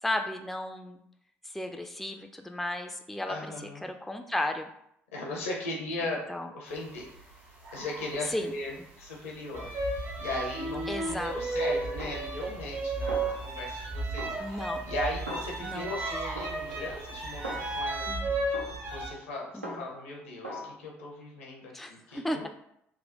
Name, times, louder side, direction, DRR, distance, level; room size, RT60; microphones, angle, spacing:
voice 1, 0.0-1.0 1.4-3.4 3.8-4.7 6.0-6.5 8.3-8.5 10.9-11.6 14.4-14.9 15.6-16.4 18.1-18.3 19.5-19.9 21.7-22.5, left 1 dB, 5° left, 5 dB, 0.3 m, -34 dB
voice 2, 3.3-3.8 5.1-6.2 6.5-7.1 7.7-18.3 18.9-22.5, left 2 dB, 75° left, -1 dB, 0.7 m, -38 dB
sound 1, 6.7-17.8, right 1 dB, 70° right, 1.0 m, -49 dB
sound 2, 9.5-19.1, right 2 dB, 50° right, 0.8 m, -33 dB
Snare drum, 12.0-12.8 13.1-13.8 14.2-16.0 16.4-18.0 18.5-20.1 20.4-20.7, equal, 90° right, 0.3 m, -42 dB
3.5 x 2.1 x 2.7 m, 0.74 s
figure-of-eight pair, 50°, 7 cm